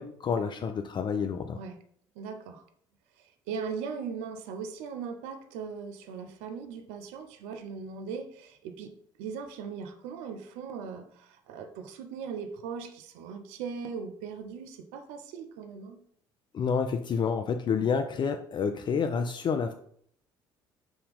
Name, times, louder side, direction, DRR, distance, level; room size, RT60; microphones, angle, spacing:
voice 1, 0.0-1.6 16.5-19.7, left 6 dB, 40° left, 0.4 m, -29 dB
voice 2, 2.2-2.6 3.2-8.9 9.2-16.0, right 6 dB, 75° right, 0.5 m, -39 dB
5.2 x 2.8 x 3.6 m
hypercardioid pair, 60°, 12 cm